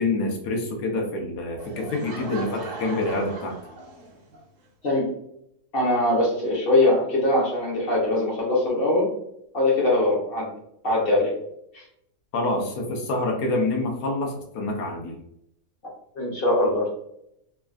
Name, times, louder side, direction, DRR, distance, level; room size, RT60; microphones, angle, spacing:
voice 1, 0.0-3.6 12.3-15.2, left 2 dB, 80° left, 1 dB, 1.2 m, -27 dB
Laughter / Crowd, 1.6-4.4, right 2 dB, 60° right, 0.9 m, -38 dB
voice 2, 5.7-9.1 9.5-10.5 10.8-11.3 11.7-11.8 16.1-16.9, left 1 dB, 50° left, -3 dB, 0.7 m, -22 dB
3.3 x 2.3 x 2.3 m, 0.76 s
omnidirectional pair, 1.7 m